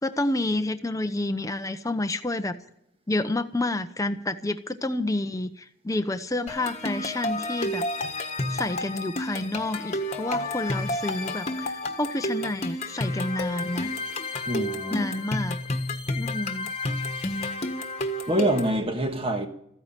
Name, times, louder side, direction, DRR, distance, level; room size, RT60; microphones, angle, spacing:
voice 1, 0.0-2.5 3.1-7.8 8.5-14.0 14.9-15.6 16.1-16.7, left 2 dB, 15° left, 0.8 m, -29 dB
sound 1, 6.5-18.8, left 1 dB, 30° left, 1.5 m, -31 dB
voice 2, 14.5-15.1 18.3-19.5, right 1 dB, 25° right, 1.6 m, -25 dB
15.0 x 9.7 x 8.9 m
head